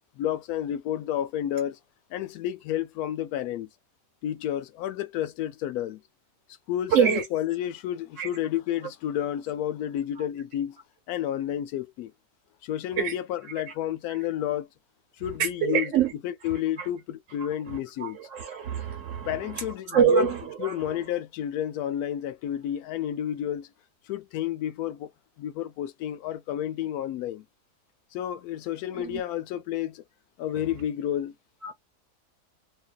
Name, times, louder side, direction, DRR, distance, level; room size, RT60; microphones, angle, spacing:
voice 1, 0.2-1.8 2.1-3.7 4.2-6.0 6.7-10.8 11.1-12.1 12.6-14.7 15.2-15.9 16.2-18.2 19.3-20.3 20.6-23.7 24.1-25.1 25.4-27.4 28.1-30.0 30.4-31.3, left 11 dB, 75° left, 1.0 m, -31 dB
voice 2, 6.9-7.2 8.2-8.3 10.2-10.3 13.0-13.1 14.1-14.2 15.4-16.1 16.8-16.9 17.7-21.0 29.0-29.2 31.6-31.7, right 7 dB, 60° right, 1.0 m, -26 dB
2.6 x 2.5 x 2.2 m
omnidirectional pair, 1.7 m